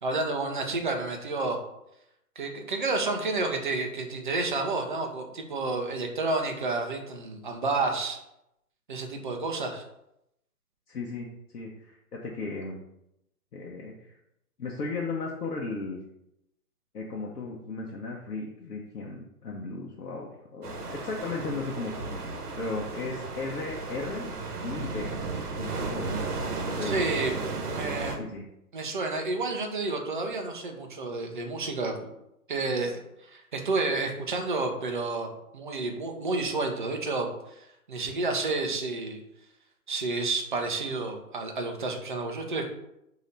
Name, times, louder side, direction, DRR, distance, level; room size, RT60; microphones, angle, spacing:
voice 1, 0.0-1.6 2.4-8.2 8.9-9.8 26.8-27.3 27.7-28.2 28.7-31.9 32.5-35.3 35.5-39.2 39.9-42.6, right 3 dB, 35° right, 3 dB, 0.5 m, -30 dB
voice 2, 10.9-11.3 11.5-12.8 13.5-14.1 14.6-16.0 16.9-22.3 22.6-24.3 24.6-25.1 25.6-26.2 26.7-27.1 28.1-28.4, left 3 dB, 90° left, -2 dB, 0.8 m, -35 dB
sound 1, 20.6-28.2, right 3 dB, 85° right, 1.0 m, -34 dB
3.2 x 2.8 x 4.0 m, 0.83 s
hypercardioid pair, 155°, 45 cm